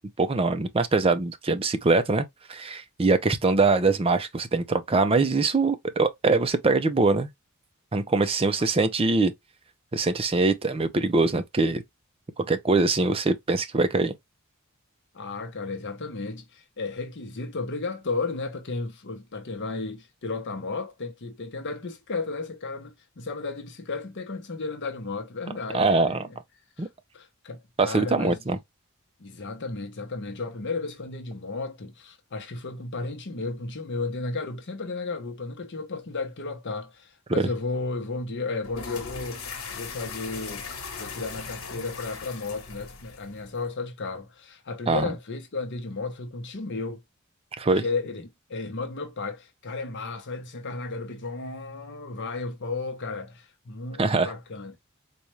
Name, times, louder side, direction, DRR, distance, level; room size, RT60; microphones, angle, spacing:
voice 1, 0.2-7.3 7.9-9.3 9.9-11.8 12.5-14.1 25.7-26.3 26.8-26.9 27.8-28.6 37.4-37.5 44.9-45.1 47.6-47.8 54.0-54.3, right 3 dB, 25° right, 0.5 m, -23 dB
voice 2, 15.1-26.4 26.8-26.9 27.1-28.4 29.2-39.4 39.7-40.7 41.0-47.0 47.8-54.8, left 3 dB, 60° left, 0.8 m, -34 dB
sound 1, 38.6-43.7, left 5 dB, 80° left, 1.1 m, -39 dB
4.1 x 2.4 x 3.1 m
head